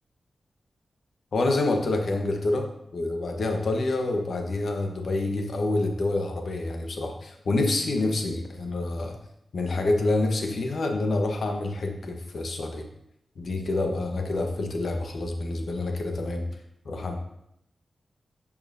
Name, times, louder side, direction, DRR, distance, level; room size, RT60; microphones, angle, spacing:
voice 1, 1.3-2.7 2.9-9.1 9.5-12.8 13.4-16.5 16.8-17.2, left 2 dB, 70° left, 3 dB, 1.1 m, -27 dB
11.0 x 5.7 x 2.7 m, 0.79 s
wide cardioid pair, 100°, 0 cm